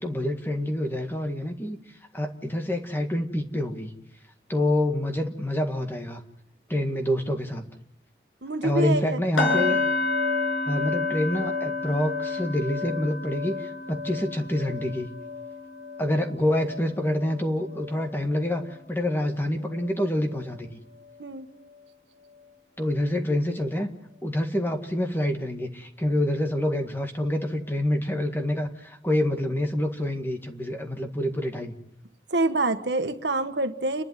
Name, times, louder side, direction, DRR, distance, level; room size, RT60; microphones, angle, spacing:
voice 1, 0.0-3.9 4.5-6.2 6.7-7.6 8.6-9.8 10.7-15.1 16.0-20.8 22.8-23.9 24.2-31.7, left 1 dB, 10° left, 4 dB, 1.8 m, -27 dB
voice 2, 8.4-9.8 21.2-21.5 32.3-34.0, right 2 dB, 75° right, 8 dB, 1.5 m, -27 dB
sound 1, 9.4-19.3 19.6-19.9 20.3-20.5, left 3 dB, 85° left, 6.2 m, -30 dB
30.0 x 11.5 x 9.4 m, 0.78 s
head